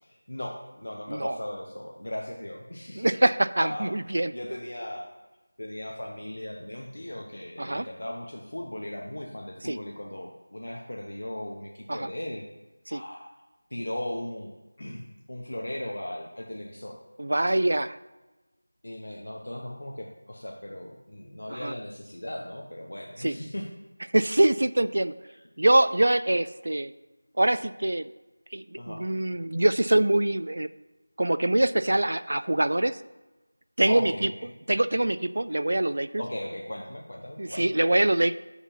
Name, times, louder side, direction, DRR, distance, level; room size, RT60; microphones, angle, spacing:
voice 1, 0.0-3.1 3.6-3.9 4.3-5.1 5.6-12.4 12.9-13.3 13.7-14.5 14.8-17.0 18.8-23.7 28.7-29.0 33.9-34.5 36.2-37.7, left 1 dB, 70° left, 0 dB, 1.0 m, -37 dB
voice 2, 1.1-1.4 3.0-4.3 7.6-7.9 9.6-9.8 11.9-12.1 12.9-13.0 17.2-18.0 21.5-21.7 23.2-23.3 24.1-25.1 25.6-26.9 27.4-28.1 28.5-30.7 31.2-33.0 33.8-34.3 34.7-36.2 37.4-38.3, right 1 dB, 55° right, 15 dB, 0.3 m, -24 dB
6.7 x 4.9 x 5.6 m, 1.1 s
figure-of-eight pair, 175°, 0 cm